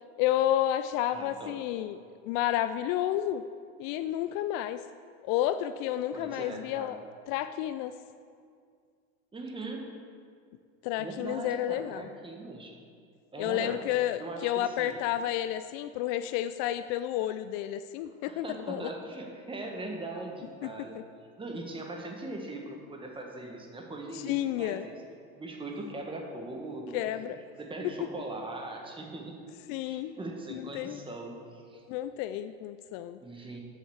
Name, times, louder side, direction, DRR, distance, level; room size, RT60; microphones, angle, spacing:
voice 1, 0.2-2.0 2.2-3.4 3.8-4.8 5.2-7.0 7.3-7.9 10.8-12.0 13.4-18.9 20.6-20.7 20.9-21.0 24.2-24.9 26.9-27.4 29.7-30.1 30.5-31.0 31.9-33.2, left 12 dB, 65° left, 11 dB, 0.4 m, -31 dB
voice 2, 1.1-1.6 6.1-7.0 9.3-9.8 10.9-12.7 13.3-13.8 14.2-15.0 18.3-21.0 21.4-25.0 25.3-27.1 27.6-29.3 29.8-31.8 33.2-33.6, right 2 dB, 15° right, 1 dB, 1.6 m, -40 dB
8.2 x 6.4 x 7.1 m, 2.2 s
supercardioid pair, 110°, 31 cm